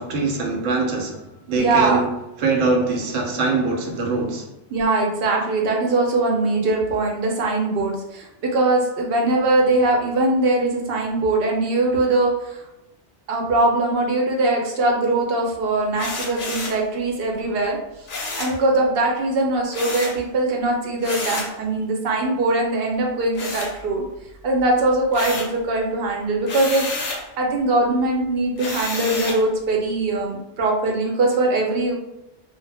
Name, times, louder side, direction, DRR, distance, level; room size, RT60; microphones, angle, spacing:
voice 1, 0.0-2.1 2.4-4.5, right 3 dB, 85° right, 1 dB, 0.9 m, -23 dB
voice 2, 1.6-2.0 4.7-12.6 13.3-17.8 18.4-24.0 24.4-26.9 27.4-31.9, right 2 dB, 60° right, 0 dB, 0.8 m, -21 dB
sound 1, 16.0-16.8 18.1-18.6 19.7-20.2 21.0-21.6 23.3-24.2 24.6-25.6 26.4-27.3 28.6-29.5, left 3 dB, 60° left, 0.6 m, -30 dB
2.2 x 2.0 x 3.3 m, 0.90 s
omnidirectional pair, 1.2 m